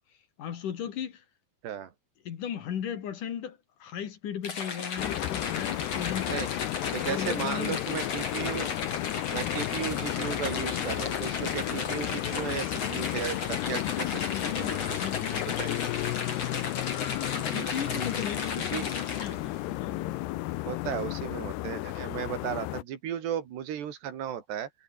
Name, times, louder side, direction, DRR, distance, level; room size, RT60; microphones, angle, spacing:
voice 1, 0.4-1.2 2.2-6.5 7.0-7.9 9.4-9.6 14.3-16.0 17.5-20.2 22.2-22.4, left 9 dB, 55° left, 3.3 m, -37 dB
sound 1, 4.4-19.5, left 5 dB, 40° left, 4.9 m, -35 dB
sound 2, 5.0-22.8, left 17 dB, 85° left, 3.0 m, -33 dB
voice 2, 6.9-8.7 9.3-15.0 15.6-15.7 17.4-18.1 18.7-18.9 20.6-24.7, right 9 dB, 90° right, 4.8 m, -35 dB
omnidirectional pair, 4.7 m